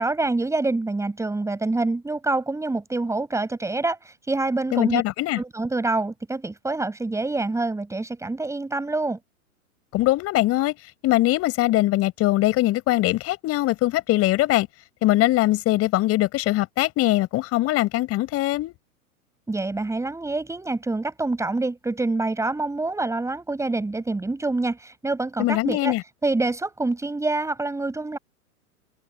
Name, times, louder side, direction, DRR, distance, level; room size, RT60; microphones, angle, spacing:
voice 1, 0.0-5.0 5.3-9.2 19.5-25.9 26.2-28.2, right 2 dB, 5° right, 6.6 m, -26 dB
voice 2, 4.7-5.4 9.9-10.8 11.0-14.7 15.0-18.7 25.4-26.0, left 17 dB, 30° left, 6.2 m, -22 dB
figure-of-eight pair, 110°, 45 cm